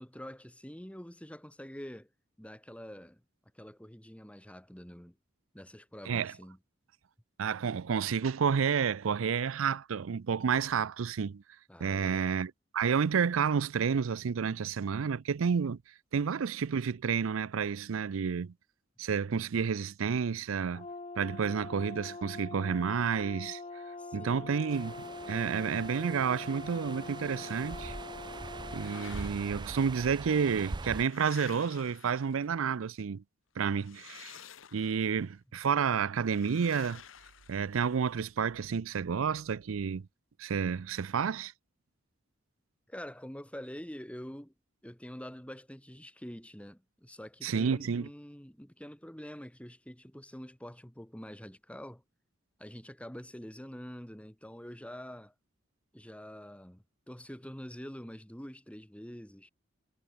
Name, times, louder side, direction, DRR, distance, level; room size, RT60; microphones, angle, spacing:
voice 1, 0.0-2.1 2.4-3.2 3.5-5.2 5.5-6.6 11.7-12.4 24.0-24.6 42.9-44.5 44.8-52.0 52.6-55.3 55.9-59.5, equal, 5° left, 2.6 m, -46 dB
voice 2, 7.4-11.4 11.8-15.8 16.1-18.5 19.0-20.9 21.2-23.6 24.1-24.9 25.3-27.9 28.7-33.2 33.6-34.4 34.7-37.0 37.5-40.1 40.4-41.5 47.4-48.1, right 6 dB, 80° right, 0.5 m, -30 dB
Brass instrument, 20.7-29.2, left 3 dB, 30° left, 1.4 m, -44 dB
sound 1, 24.7-31.0, right 3 dB, 20° right, 0.5 m, -43 dB
sound 2, 28.5-29.7 30.5-32.7 33.8-35.2 36.2-38.1, left 8 dB, 70° left, 1.1 m, -52 dB
head